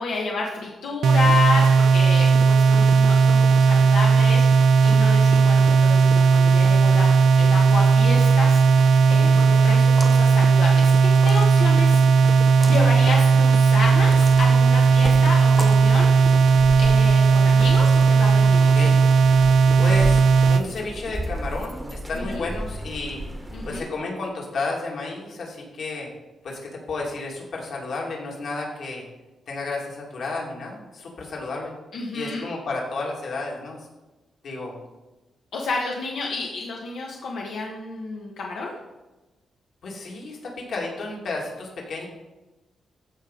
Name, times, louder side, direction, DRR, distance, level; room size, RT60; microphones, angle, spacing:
voice 1, 0.0-7.1 7.4-12.0 12.6-16.5 16.8-18.7 22.1-22.5 23.5-23.9 31.9-32.4 35.5-38.7, left 3 dB, 90° left, -2 dB, 1.3 m, -30 dB
sound 1, 1.0-20.6, right 5 dB, 75° right, 0.4 m, -16 dB
voice 2, 9.1-9.4 18.6-19.0 19.8-20.2 20.5-23.2 23.7-26.1 26.4-29.0 29.5-31.7 32.1-33.8 34.4-34.8 39.8-42.1, left 3 dB, 60° left, -1 dB, 2.3 m, -32 dB
sound 2, 9.9-10.3 11.1-11.7 12.5-12.8 14.0-14.5 15.5-15.9, left 1 dB, 10° left, 1.2 m, -35 dB
sound 3, 13.8-23.8, equal, 10° right, 1.0 m, -35 dB
14.5 x 5.1 x 3.9 m, 1.1 s
wide cardioid pair, 160°, 0 cm